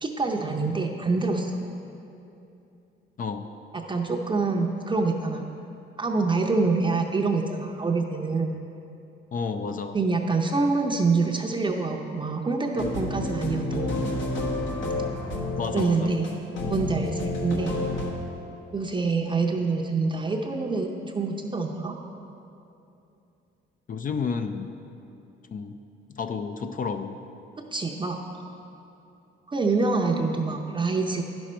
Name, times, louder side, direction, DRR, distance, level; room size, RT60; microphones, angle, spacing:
voice 1, 0.0-1.5 3.9-5.4 6.0-8.5 9.9-14.0 15.7-16.4 16.7-17.8 18.7-21.9 27.7-28.2 29.5-31.2, right 3 dB, 25° right, 1 dB, 0.6 m, -26 dB
voice 2, 9.3-10.0 15.6-16.1 23.9-24.7 25.5-25.8 26.1-27.2, left 5 dB, 45° left, 7 dB, 0.4 m, -31 dB
sound 1, 12.7-18.1, left 2 dB, 70° left, 1.2 m, -30 dB
10.0 x 6.2 x 4.4 m, 2.8 s
cardioid pair, 90°, 20 cm